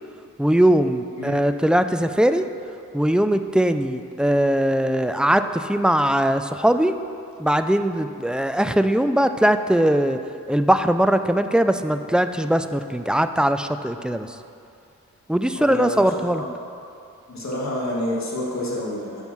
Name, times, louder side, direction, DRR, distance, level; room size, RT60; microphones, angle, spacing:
voice 1, 0.4-2.5 2.9-7.0 7.4-10.2 10.5-14.3 15.3-16.4, right 1 dB, 5° right, 9 dB, 0.3 m, -20 dB
voice 2, 15.5-16.5 17.3-19.2, left 1 dB, 55° left, -5 dB, 1.8 m, -28 dB
7.2 x 5.3 x 6.0 m, 2.5 s
cardioid pair, 55°, 33 cm